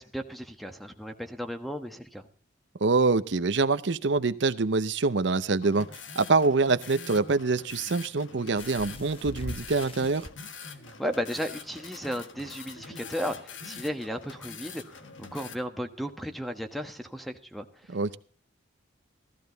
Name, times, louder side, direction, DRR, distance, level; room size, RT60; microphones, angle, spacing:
voice 1, 0.0-2.3 11.0-17.9, equal, ahead, 1.2 m, -35 dB
voice 2, 2.8-5.9 6.2-10.3 17.9-18.2, right 3 dB, 65° right, 0.7 m, -25 dB
sound 1, 5.6-15.5, left 5 dB, 80° left, 1.6 m, -44 dB
sound 2, 8.6-10.3 11.3-11.4 11.8-11.9, left 2 dB, 30° left, 1.0 m, -41 dB
15.0 x 14.0 x 4.0 m
head